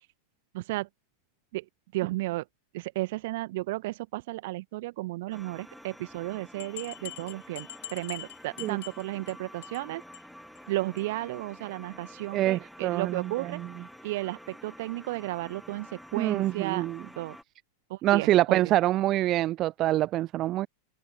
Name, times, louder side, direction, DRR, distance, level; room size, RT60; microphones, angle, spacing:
voice 1, 0.5-0.9 1.5-2.5 2.7-10.0 10.7-13.6 14.0-16.9 17.2-17.4 17.9-18.8, right 19 dB, 50° right, 1.8 m, -34 dB
sound 1, 5.3-17.4, equal, ahead, 1.7 m, -49 dB
sound 2, 6.2-6.3 6.6-9.3 9.6-9.9 10.1-10.2 10.6-10.7 11.0-11.1, left 14 dB, 55° left, 3.8 m, -43 dB
voice 2, 12.3-13.5 16.2-17.0 18.0-20.7, right 15 dB, 35° right, 0.4 m, -25 dB
figure-of-eight pair, 90°, 0 cm